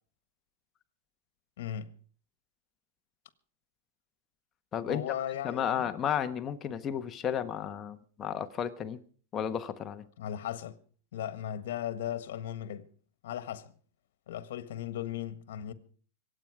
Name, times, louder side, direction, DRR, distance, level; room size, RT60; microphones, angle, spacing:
voice 1, 1.6-1.9 4.9-5.9 10.2-10.8 11.1-12.9 13.2-13.7 14.3-15.7, left 10 dB, 75° left, 1.4 m, -37 dB
voice 2, 4.7-5.0 5.4-9.0 9.3-10.1, left 8 dB, 25° left, 1.2 m, -33 dB
25.5 x 8.9 x 4.9 m
supercardioid pair, 135°, 0 cm